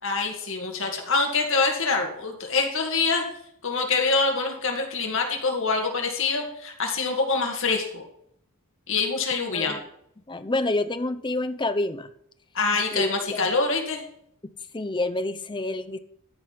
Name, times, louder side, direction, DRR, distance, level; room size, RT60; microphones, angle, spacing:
voice 1, 0.0-3.2 3.6-8.0 8.9-9.8 12.5-14.0, left 4 dB, 60° left, 2 dB, 2.1 m, -25 dB
voice 2, 10.3-12.1 12.9-13.4 14.7-16.0, left 2 dB, 20° left, 11 dB, 0.6 m, -28 dB
13.5 x 5.1 x 5.7 m, 0.70 s
head